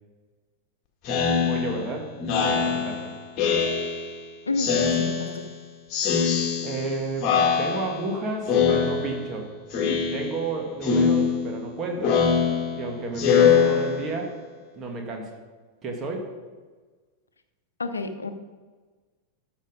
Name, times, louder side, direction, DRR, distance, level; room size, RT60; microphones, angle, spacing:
Speech synthesizer, 1.1-4.2 4.6-5.6 5.9-6.9 7.2-8.1 8.5-9.4 9.7-10.5 10.8-14.4, left 6 dB, 35° left, 1.8 m, -23 dB
voice 1, 1.3-3.1 6.6-7.3 7.6-9.5 10.1-12.2 12.7-14.3 14.8-15.3 15.8-16.3, right 3 dB, 25° right, 1 dB, 2.1 m, -32 dB
voice 2, 4.5-5.4 17.8-18.3, left 3 dB, 75° left, 9 dB, 0.8 m, -30 dB
13.0 x 6.1 x 5.2 m, 1.4 s
figure-of-eight pair, 90°, 0 cm